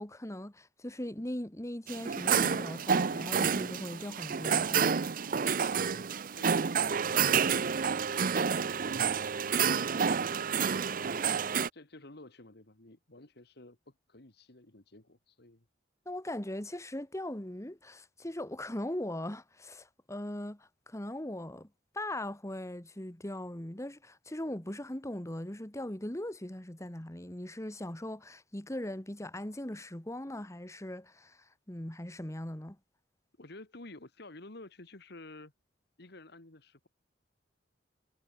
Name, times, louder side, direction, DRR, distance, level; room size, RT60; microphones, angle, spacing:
voice 1, 0.0-5.0 16.1-21.7 21.9-32.8, left 1 dB, 15° left, 1.7 m, -39 dB
sound 1, 1.9-11.7, right 6 dB, 50° right, 0.6 m, -29 dB
voice 2, 5.8-7.2 8.1-9.8 10.3-15.7 33.4-35.5 36.0-36.9, left 2 dB, 60° left, 2.3 m, -52 dB
head